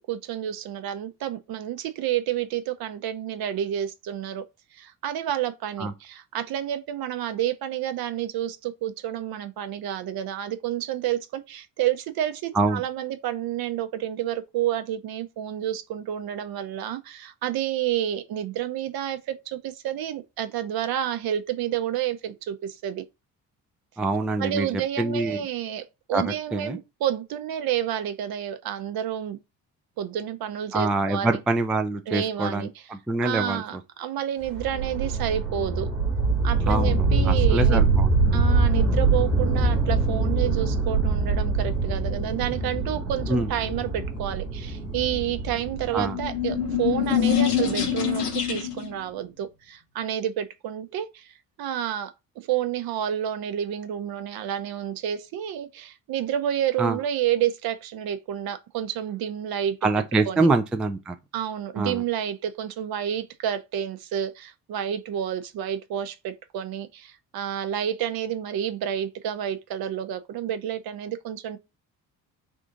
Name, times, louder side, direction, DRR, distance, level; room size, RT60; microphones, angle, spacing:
voice 1, 0.1-4.4 4.7-23.0 24.4-29.4 30.0-31.4 32.1-32.8 33.2-35.9 36.4-37.9 38.3-51.3 51.6-59.8 60.3-60.5 61.3-71.6, right 10 dB, 50° right, 0.7 m, -29 dB
voice 2, 24.0-24.7 25.0-25.4 26.1-26.8 30.7-33.6 36.7-38.1 43.3-43.5 45.9-46.2 56.8-57.0 59.8-61.2 61.8-62.0, right 2 dB, ahead, 0.3 m, -25 dB
sound 1, 34.4-47.5, right 3 dB, 90° right, 1.2 m, -24 dB
sound 2, 45.8-48.9, left 9 dB, 85° left, 0.8 m, -25 dB
3.5 x 2.5 x 3.8 m
figure-of-eight pair, 45°, 46 cm